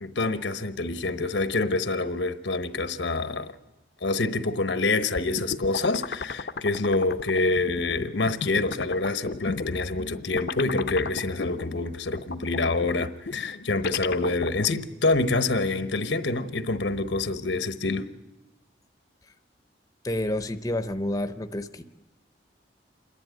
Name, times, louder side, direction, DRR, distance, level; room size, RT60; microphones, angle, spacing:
voice 1, 0.0-3.6 4.0-18.0, left 3 dB, 90° left, 1.0 m, -26 dB
sound 1, 5.2-14.8, left 4 dB, 60° left, 0.6 m, -34 dB
voice 2, 20.0-21.8, left 1 dB, 20° left, 0.6 m, -29 dB
28.0 x 10.5 x 9.1 m
head